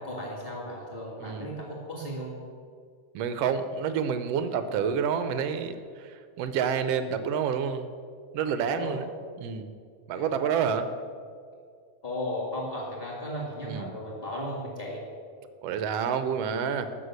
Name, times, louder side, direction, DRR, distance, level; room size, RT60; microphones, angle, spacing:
voice 1, 0.0-2.3 8.8-9.0 10.1-10.3 12.0-15.0, equal, 15° left, -4 dB, 1.8 m, -35 dB
voice 2, 1.2-1.6 3.1-7.9 8.3-9.1 9.4-9.7 10.1-10.9 13.6-13.9 15.6-16.9, right 7 dB, 80° right, 10 dB, 1.4 m, -28 dB
13.0 x 6.3 x 8.1 m, 2.1 s
omnidirectional pair, 3.6 m